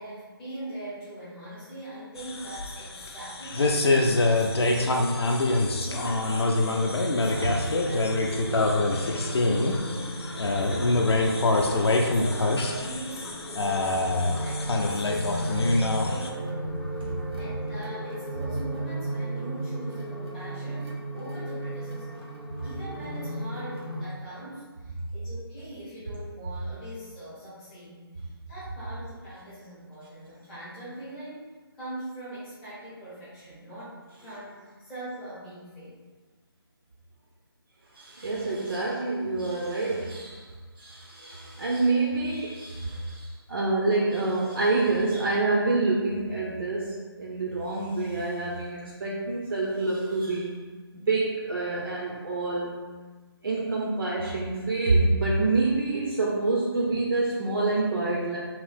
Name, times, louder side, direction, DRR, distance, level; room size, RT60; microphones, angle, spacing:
voice 1, 0.0-8.1 8.5-10.1 10.4-11.6 12.0-16.7 17.3-22.2 22.6-28.0 28.5-31.4 31.7-36.0, right 1 dB, 5° left, -14 dB, 0.4 m, -42 dB
sound 1, 2.2-16.3, left 2 dB, 85° left, 0.5 m, -25 dB
sound 2, 7.1-24.1, right 1 dB, 80° right, 1.0 m, -35 dB
voice 2, 37.9-40.5 40.8-50.6 50.9-52.8 53.4-58.4, right 3 dB, 60° right, -4 dB, 0.5 m, -27 dB
2.9 x 2.0 x 3.2 m, 1.4 s
figure-of-eight pair, 165°, 13 cm